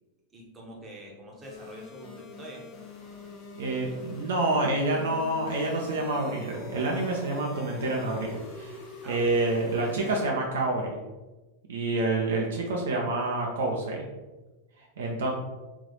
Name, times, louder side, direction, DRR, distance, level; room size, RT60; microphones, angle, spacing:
voice 1, 0.3-2.6 9.0-9.4, right 1 dB, 15° right, -2 dB, 1.1 m, -45 dB
sound 1, 1.4-10.3, left 2 dB, 30° left, 1.0 m, -45 dB
voice 2, 3.6-11.0 11.7-14.1 14.8-15.3, right 2 dB, 60° right, -1 dB, 0.7 m, -28 dB
3.5 x 2.7 x 3.9 m, 1.2 s
figure-of-eight pair, 90°, 0 cm